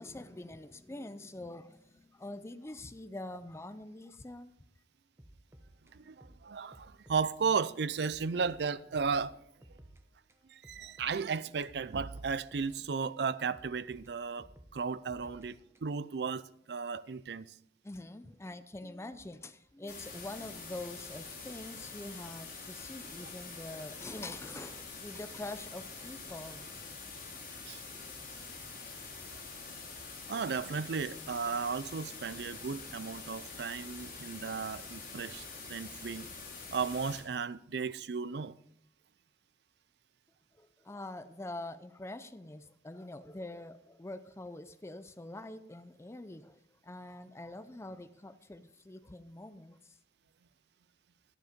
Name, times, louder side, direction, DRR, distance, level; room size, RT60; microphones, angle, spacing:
voice 1, 0.0-4.5 15.3-15.4 17.8-26.6 40.5-50.0, left 2 dB, 15° left, 0.5 m, -45 dB
sound 1, 5.2-7.3 7.6-7.7 8.1-10.0 10.3-13.2 13.5-16.1, right 1 dB, 15° right, 1.0 m, -58 dB
voice 2, 5.9-9.4 10.5-14.5 14.7-17.5 27.7-27.8 30.3-36.3 36.7-38.6, right 5 dB, 65° right, 0.5 m, -35 dB
sound 2, 19.9-37.2, left 4 dB, 55° left, 4.0 m, -46 dB
12.0 x 10.5 x 5.1 m
head